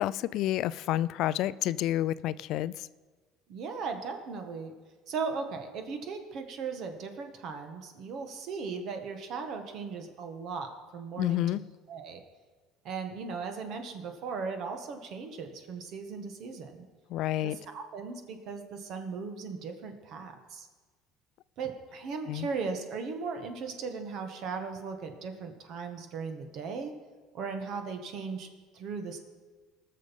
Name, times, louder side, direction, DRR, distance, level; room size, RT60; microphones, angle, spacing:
voice 1, 0.0-2.9 11.2-11.6 17.1-17.6 22.3-22.5, left 13 dB, 65° left, 18 dB, 0.3 m, -29 dB
voice 2, 3.5-4.7 5.1-11.6 11.9-12.2 12.8-16.9 17.4-20.7 21.6-26.9 27.3-29.2, right 5 dB, 55° right, 6 dB, 1.7 m, -37 dB
19.5 x 6.7 x 5.4 m, 1.3 s
cardioid pair, 125°, 0 cm